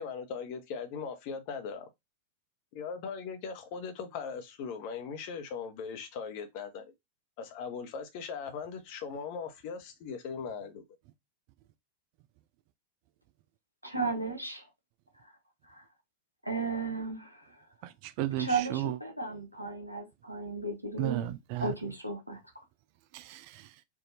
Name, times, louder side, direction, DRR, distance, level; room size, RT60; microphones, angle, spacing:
voice 1, 0.0-1.9 2.7-6.9 7.4-10.8, left 6 dB, 45° left, 0.9 m, -39 dB
voice 2, 13.8-14.7 15.2-15.3 15.7-15.8 16.4-17.6 18.4-22.4, right 3 dB, 90° right, 0.9 m, -35 dB
voice 3, 17.8-19.0 21.0-21.7 23.1-23.7, right 14 dB, 45° right, 0.3 m, -34 dB
4.8 x 2.6 x 2.7 m
figure-of-eight pair, 90°, 0 cm